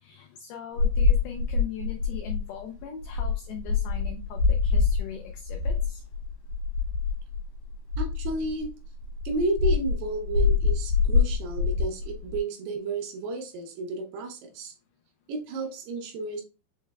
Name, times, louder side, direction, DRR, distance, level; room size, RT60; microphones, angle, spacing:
voice 1, 0.0-6.0, left 8 dB, 85° left, 3 dB, 2.1 m, -40 dB
sound 1, 0.8-8.7 9.0-12.4, left 4 dB, 70° left, 3.4 m, -25 dB
voice 2, 8.0-8.7 9.3-14.7 15.3-16.4, right 2 dB, 75° right, 2 dB, 2.6 m, -32 dB
6.6 x 3.2 x 2.2 m, 0.32 s
omnidirectional pair, 5.0 m